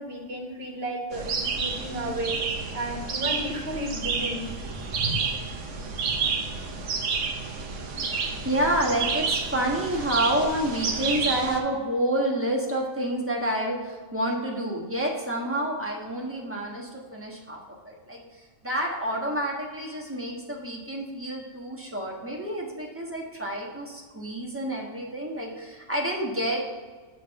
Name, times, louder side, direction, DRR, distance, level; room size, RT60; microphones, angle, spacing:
voice 1, 0.0-2.4 2.7-4.4 4.9-5.2 6.1-6.2, right 1 dB, 45° right, -1 dB, 1.5 m, -33 dB
sound 1, 1.1-11.6, right 5 dB, 65° right, 1.1 m, -30 dB
voice 2, 8.4-17.6 17.8-18.2 18.6-26.8, right 1 dB, 10° right, -3 dB, 1.1 m, -28 dB
7.4 x 3.3 x 5.8 m, 1.4 s
omnidirectional pair, 1.5 m